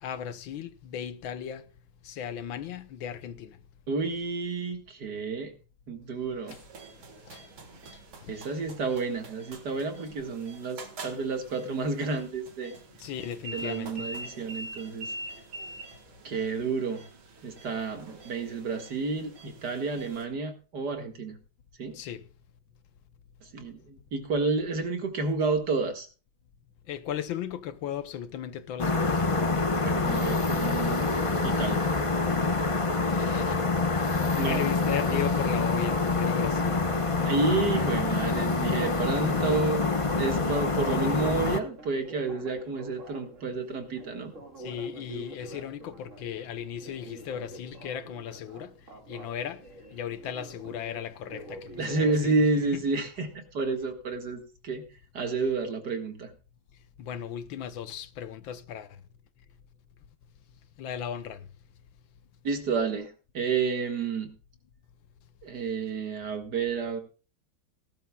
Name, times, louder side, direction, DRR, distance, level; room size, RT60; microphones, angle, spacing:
voice 1, 0.0-1.7 2.0-3.6 6.5-6.6 7.3-7.4 8.2-8.4 13.0-14.1 21.9-22.3 26.9-29.5 33.1-33.5 34.4-36.8 44.6-48.7 49.1-49.6 49.9-52.3 57.0-58.9 60.8-61.5, left 9 dB, 75° left, 1.6 m, -36 dB
voice 2, 3.9-5.5 5.9-6.6 8.3-12.7 13.5-15.1 16.2-17.0 17.4-21.4 21.8-22.0 23.4-26.1 29.8-31.0 31.4-31.8 34.3-34.6 37.2-39.9 40.1-44.3 51.8-54.8 55.1-56.3 62.4-64.3 65.4-67.0, right 4 dB, 55° right, 2.2 m, -30 dB
sound 1, 6.5-20.3, right 2 dB, 80° right, 2.6 m, -45 dB
sound 2, 28.8-41.6, left 3 dB, 35° left, 0.5 m, -26 dB
Telephone, 35.5-52.7, right 1 dB, 40° right, 2.3 m, -47 dB
18.0 x 12.5 x 2.3 m
omnidirectional pair, 2.2 m